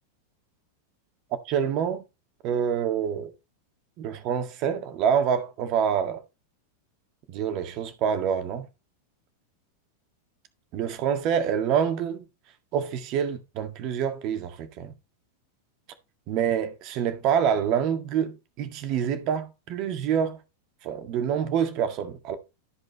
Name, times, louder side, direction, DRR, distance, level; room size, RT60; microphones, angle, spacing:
voice 1, 1.5-2.0 2.4-3.3 4.0-6.2 7.3-8.7 10.7-12.3 12.7-14.9 16.3-20.4 20.8-22.4, right 8 dB, 40° right, 1.8 m, -26 dB
13.0 x 5.4 x 4.1 m
figure-of-eight pair, 90°, 0 cm